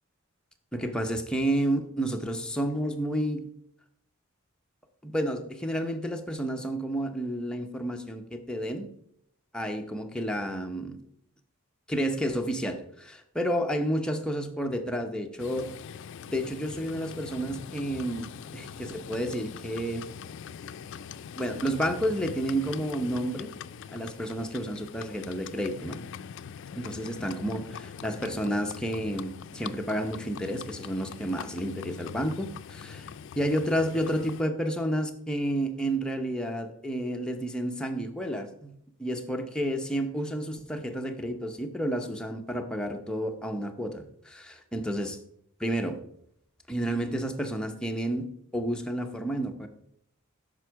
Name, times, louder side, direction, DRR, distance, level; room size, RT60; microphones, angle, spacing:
voice 1, 0.7-3.5 5.0-8.9 9.5-11.0 11.9-15.7 16.3-20.1 21.4-23.5 23.9-26.0 26.8-33.1 33.4-45.2 45.6-46.0 46.7-48.3 48.5-49.7, right 1 dB, 5° left, 3 dB, 0.7 m, -30 dB
Livestock farm animals working animals, 15.4-34.4, left 7 dB, 60° left, 0.3 m, -42 dB
9.6 x 6.1 x 4.6 m, 0.71 s
head